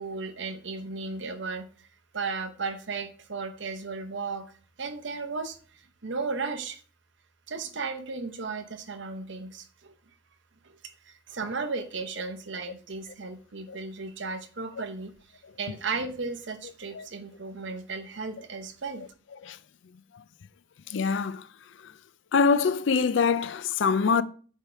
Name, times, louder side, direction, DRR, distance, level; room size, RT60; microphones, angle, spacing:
voice 1, 0.0-1.9 2.1-4.5 4.8-6.8 7.5-9.9 10.6-15.1 15.6-19.1, right 4 dB, 60° right, 0.8 m, -35 dB
voice 2, 20.9-21.5 21.8-21.9 22.3-24.2, left 5 dB, 65° left, 0.4 m, -24 dB
8.0 x 3.6 x 4.3 m
head